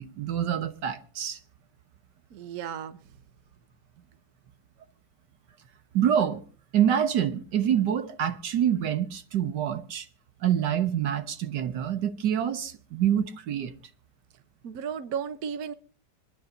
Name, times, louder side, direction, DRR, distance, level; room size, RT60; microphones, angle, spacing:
voice 1, 0.0-1.4 5.9-6.4 6.7-10.1 10.4-13.7, right 9 dB, 85° right, 1.8 m, -26 dB
voice 2, 2.3-3.0 14.6-15.7, right 7 dB, 65° right, 1.4 m, -34 dB
27.5 x 10.0 x 2.6 m
omnidirectional pair, 1.8 m